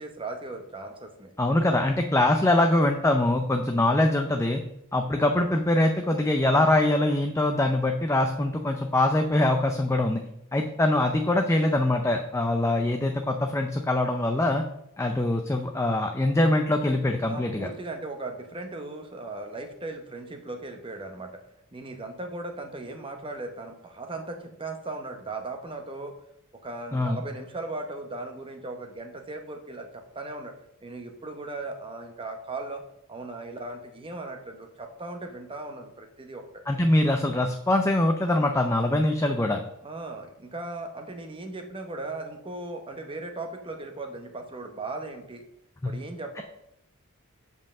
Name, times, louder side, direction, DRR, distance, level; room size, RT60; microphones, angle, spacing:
voice 1, 0.0-1.3 17.3-21.4 21.7-26.1 26.6-30.5 30.8-32.8 33.1-36.6 39.8-45.4 45.8-46.4, right 2 dB, 25° right, 4 dB, 0.8 m, -37 dB
voice 2, 1.4-4.6 4.9-10.2 10.5-14.6 15.0-17.7 26.9-27.2 36.7-39.6 45.8-45.9, left 1 dB, 15° left, 4 dB, 0.5 m, -23 dB
7.8 x 5.4 x 6.5 m, 0.81 s
head